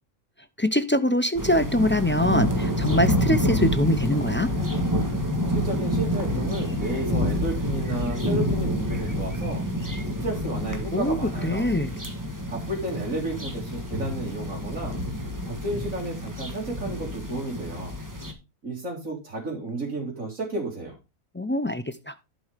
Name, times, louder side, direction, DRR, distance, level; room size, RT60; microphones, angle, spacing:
voice 1, 0.6-4.5 10.9-12.0 21.3-22.1, left 1 dB, 20° left, 0.3 m, -23 dB
sound 1, 1.4-18.3, equal, 15° right, 1.7 m, -28 dB
voice 2, 5.5-9.6 10.2-11.7 12.5-15.0 15.4-18.0 18.6-21.0, right 2 dB, 70° right, 3.3 m, -32 dB
11.5 x 5.5 x 5.0 m
omnidirectional pair, 1.4 m